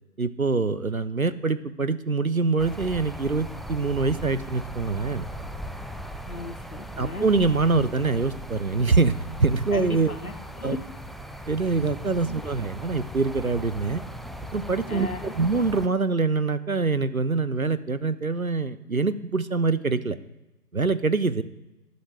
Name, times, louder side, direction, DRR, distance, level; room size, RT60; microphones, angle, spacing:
voice 1, 0.2-5.3 7.0-10.2 10.6-10.8 11.5-14.0 14.5-20.2 20.7-21.4, right 4 dB, 60° right, 14 dB, 0.5 m, -24 dB
sound 1, 2.6-15.9, equal, ahead, 0.4 m, -38 dB
voice 2, 6.3-7.3 9.7-10.8 12.3-12.4 14.9-15.3, left 2 dB, 60° left, 9 dB, 1.0 m, -36 dB
11.5 x 8.3 x 3.3 m, 1.0 s
figure-of-eight pair, 175°, 48 cm